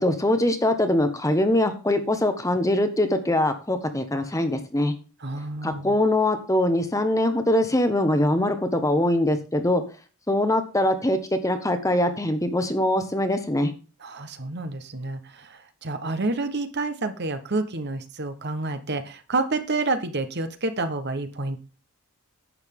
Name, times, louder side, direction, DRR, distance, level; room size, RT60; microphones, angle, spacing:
voice 1, 0.0-4.9 5.6-9.8 10.3-13.7, left 1 dB, 15° left, 8 dB, 1.2 m, -23 dB
voice 2, 5.2-5.9 14.0-21.6, right 3 dB, 50° right, 10 dB, 1.2 m, -29 dB
11.0 x 8.9 x 3.7 m, 0.34 s
head